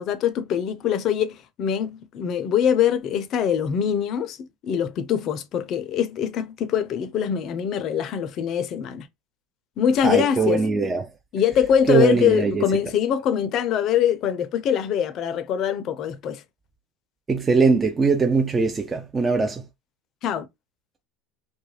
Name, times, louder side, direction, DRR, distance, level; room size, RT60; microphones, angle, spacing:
voice 1, 0.0-9.1 9.8-10.6 11.3-16.4 20.2-20.5, left 9 dB, 50° left, 0.5 m, -23 dB
voice 2, 10.0-11.1 11.9-12.7 17.3-19.7, right 4 dB, 20° right, 0.4 m, -21 dB
2.3 x 2.1 x 3.1 m
supercardioid pair, 105°, 0 cm